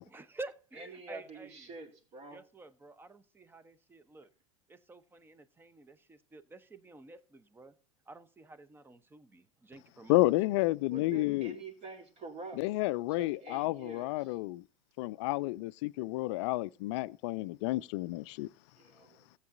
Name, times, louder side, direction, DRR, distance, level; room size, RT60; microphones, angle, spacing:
voice 1, 0.1-1.7 2.3-4.3 4.7-7.8 8.1-10.2, right 2 dB, 10° right, 0.8 m, -50 dB
voice 2, 0.8-2.4 10.9-12.6 13.1-14.4 18.7-19.2, right 3 dB, 40° right, 2.4 m, -47 dB
voice 3, 10.1-11.6 12.6-14.6 15.0-18.5, left 19 dB, 55° left, 0.4 m, -30 dB
16.5 x 8.2 x 2.6 m
hypercardioid pair, 90°, 17 cm